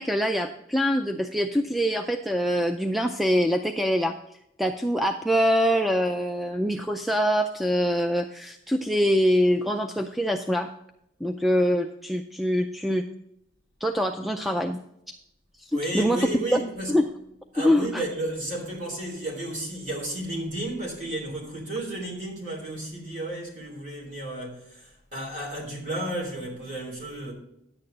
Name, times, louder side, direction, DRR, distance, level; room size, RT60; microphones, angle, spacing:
voice 1, 0.0-10.7 11.2-13.1 13.8-14.8 15.6-16.6 16.9-17.1 17.6-18.0, equal, ahead, 0.3 m, -24 dB
voice 2, 15.7-17.0 17.5-27.3, right 1 dB, 40° right, 3.3 m, -33 dB
10.5 x 8.7 x 3.9 m
head